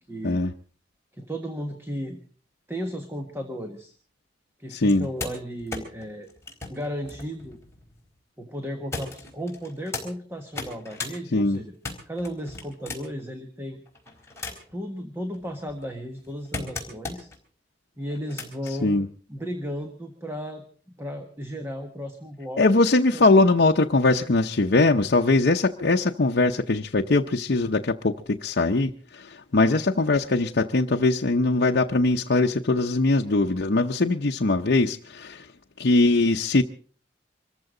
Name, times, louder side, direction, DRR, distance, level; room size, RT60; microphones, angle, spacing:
voice 1, 0.1-0.5 1.1-2.2 2.7-3.9 4.6-6.3 6.7-7.6 8.4-11.7 12.1-13.8 14.7-17.3 18.0-22.6 23.1-23.2, equal, 15° right, 4 dB, 1.5 m, -34 dB
voice 2, 4.7-5.1 11.3-11.6 18.8-19.1 22.6-35.5 35.8-36.6, left 2 dB, 65° left, 1 dB, 0.8 m, -21 dB
sound 1, 4.8-8.1 8.9-10.1 10.5-11.1 11.5-13.2 13.9-14.8 15.3-17.4 18.1-18.7 19.8-19.9, left 3 dB, 15° left, 4.0 m, -37 dB
25.5 x 14.5 x 3.8 m, 0.42 s
head